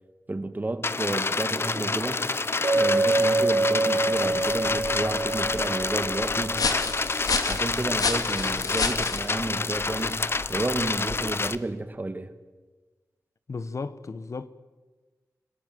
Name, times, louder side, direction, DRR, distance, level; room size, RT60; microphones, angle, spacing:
voice 1, 0.3-2.3 2.8-6.7 7.5-12.3, right 2 dB, 30° right, 1.8 m, -31 dB
sound 1, 0.8-11.6, left 3 dB, 40° left, 0.9 m, -28 dB
Chink clink, 2.6-6.8, right 2 dB, 65° right, 4.0 m, -26 dB
sound 2, 4.3-11.6, left 4 dB, 80° left, 2.5 m, -32 dB
voice 2, 13.5-14.5, left 4 dB, 55° left, 1.3 m, -34 dB
30.0 x 18.5 x 7.9 m
wide cardioid pair, 95°, 6 cm